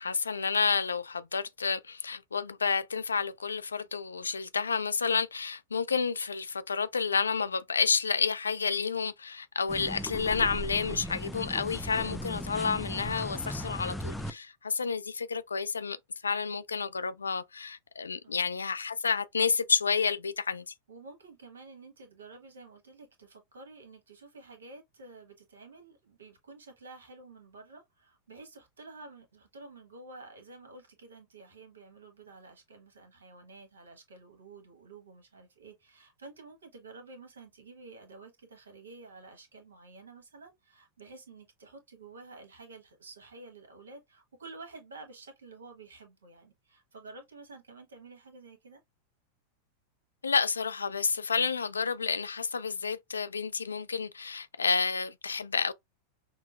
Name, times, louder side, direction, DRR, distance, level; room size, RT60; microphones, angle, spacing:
voice 1, 0.0-16.0 16.2-20.7 50.2-55.7, left 5 dB, 75° left, 0.3 m, -30 dB
sound 1, 9.7-14.3, equal, 5° left, 0.4 m, -37 dB
voice 2, 20.9-48.8, right 3 dB, 70° right, 1.2 m, -50 dB
5.8 x 2.0 x 2.3 m
figure-of-eight pair, 90°, 0 cm